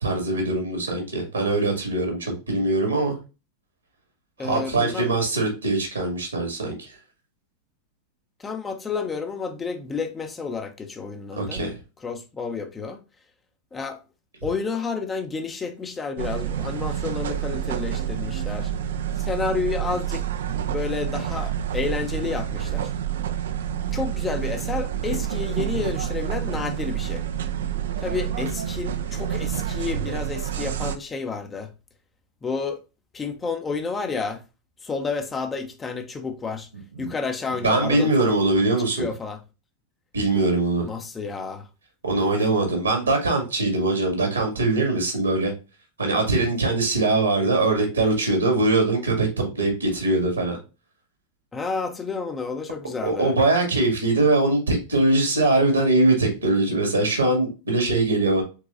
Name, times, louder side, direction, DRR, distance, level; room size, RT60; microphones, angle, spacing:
voice 1, 0.0-3.2 4.4-6.9 11.4-11.7 36.9-37.1 37.6-39.1 40.1-40.9 42.0-45.5 46.0-50.6 53.0-58.4, right 2 dB, 75° right, 2.0 m, -22 dB
voice 2, 4.4-5.1 8.4-11.6 12.0-13.0 13.7-14.0 14.4-18.7 19.2-20.2 20.5-22.9 23.9-27.2 28.0-31.7 32.4-32.8 33.1-34.4 34.8-36.7 37.0-38.3 39.0-39.4 40.8-41.7 51.5-53.3, left 5 dB, 15° left, 0.7 m, -30 dB
sound 1, 16.2-31.0, right 10 dB, 60° right, 0.5 m, -28 dB
4.7 x 3.9 x 2.6 m
figure-of-eight pair, 90°, 0 cm